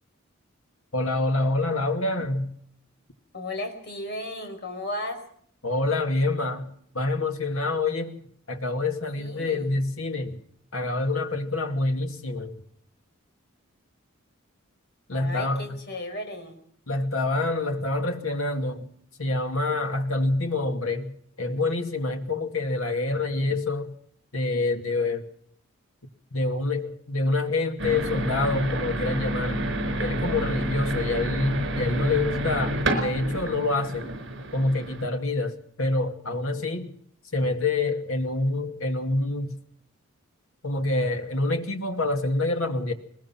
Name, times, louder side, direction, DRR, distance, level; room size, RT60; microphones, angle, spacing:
voice 1, 0.9-2.5 5.6-8.2 8.5-10.4 10.7-12.6 15.1-15.6 16.9-18.9 19.2-21.1 21.4-23.9 24.3-25.2 26.3-29.6 30.0-34.1 34.5-36.9 37.3-39.6 40.6-42.9, left 2 dB, 85° left, 2.4 m, -26 dB
voice 2, 3.3-5.2 9.1-9.7 15.1-16.6, left 1 dB, 50° left, 4.9 m, -35 dB
sound 1, 27.8-35.0, right 1 dB, 60° right, 4.9 m, -29 dB
21.5 x 21.0 x 6.0 m
head